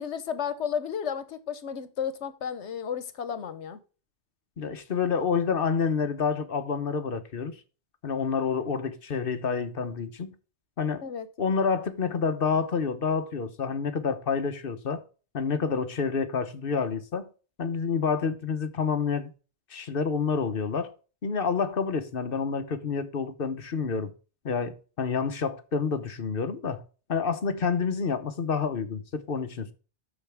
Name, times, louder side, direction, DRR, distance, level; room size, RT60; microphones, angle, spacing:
voice 1, 0.0-3.8 11.0-11.3, left 7 dB, 85° left, 1.2 m, -33 dB
voice 2, 4.6-7.6 8.0-10.3 10.8-11.0 11.4-15.0 15.3-17.3 17.6-19.3 19.7-20.9 21.2-24.1 24.4-26.8 27.1-29.7, left 5 dB, 55° left, 1.1 m, -28 dB
12.5 x 4.4 x 3.4 m
omnidirectional pair, 1.1 m